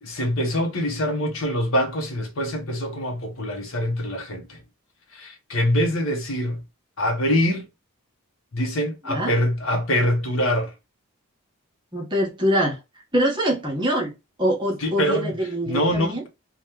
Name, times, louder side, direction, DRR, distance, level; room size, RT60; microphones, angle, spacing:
voice 1, 0.0-4.6 5.1-6.6 7.0-7.7 8.5-10.7 14.8-15.3 15.7-16.3, equal, 70° left, 0.8 m, -24 dB
voice 2, 11.9-12.8 13.1-14.1 14.4-16.2, equal, 20° right, 0.8 m, -24 dB
2.8 x 2.2 x 3.4 m
head